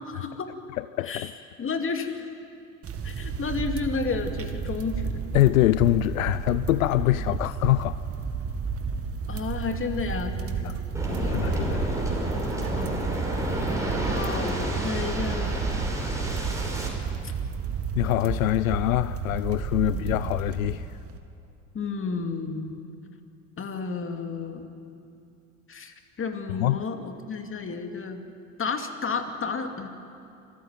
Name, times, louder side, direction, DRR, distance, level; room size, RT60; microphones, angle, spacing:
voice 1, 0.1-0.5 1.0-1.3 1.6-2.3 3.0-5.2 9.3-10.8 11.1-11.4 12.7-13.0 13.5-13.6 14.0-15.7 19.9-20.0 21.7-22.7 23.6-24.7 25.7-28.2 28.6-29.9, left 4 dB, 30° left, 2.5 m, -32 dB
voice 2, 0.8-1.3 5.3-7.9 10.6-10.8 11.3-12.1 18.0-20.9 26.6-26.8, left 16 dB, 80° left, 0.5 m, -24 dB
sound 1, 2.8-21.2, right 6 dB, 35° right, 2.1 m, -32 dB
Waves surf, 10.9-16.9, right 1 dB, 10° right, 5.7 m, -29 dB
26.5 x 14.5 x 9.3 m
hypercardioid pair, 65°, 40 cm